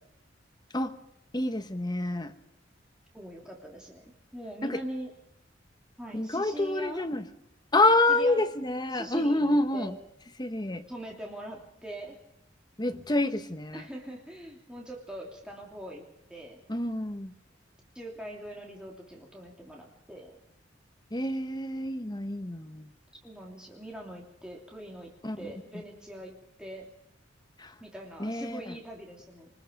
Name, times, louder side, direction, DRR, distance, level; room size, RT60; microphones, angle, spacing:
voice 1, 1.3-2.4 4.6-4.8 6.1-7.3 7.7-10.0 10.4-10.9 12.8-13.9 16.7-17.3 21.1-22.9 25.2-25.5 27.6-27.8 28.2-28.8, left 2 dB, 20° left, 7 dB, 1.2 m, -28 dB
voice 2, 3.1-4.0 4.3-5.1 6.0-7.1 8.1-8.4 8.9-9.9 10.9-12.2 13.7-16.6 17.9-20.3 23.2-25.1 25.4-26.9 27.8-29.5, right 1 dB, 5° right, -1 dB, 3.1 m, -42 dB
24.5 x 20.5 x 5.3 m, 0.82 s
head